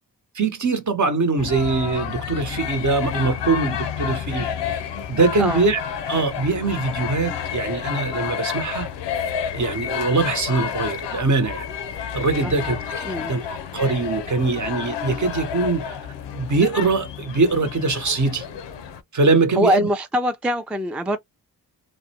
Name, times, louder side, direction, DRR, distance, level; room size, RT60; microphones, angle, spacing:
voice 1, 0.3-4.8 5.1-5.8 6.1-8.9 9.5-11.6 12.1-15.9 16.3-18.5 19.1-19.9, right 3 dB, 45° right, 0.9 m, -22 dB
sound 1, 1.4-19.0, left 8 dB, 90° left, 0.5 m, -30 dB
voice 2, 12.4-12.8 13.1-13.3 19.6-21.2, equal, 5° right, 0.3 m, -23 dB
2.5 x 2.1 x 2.7 m
cardioid pair, 40°, 42 cm